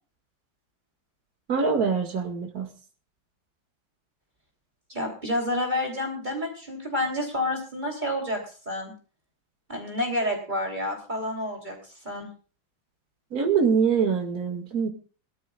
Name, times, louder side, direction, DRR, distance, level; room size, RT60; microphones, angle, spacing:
voice 1, 1.5-2.7 13.3-14.9, right 6 dB, 50° right, 4 dB, 2.5 m, -24 dB
voice 2, 4.9-8.4 8.6-8.9 9.7-11.8 12.0-12.3, left 1 dB, 25° right, 2 dB, 3.4 m, -29 dB
21.5 x 14.0 x 2.4 m, 0.37 s
omnidirectional pair, 2.1 m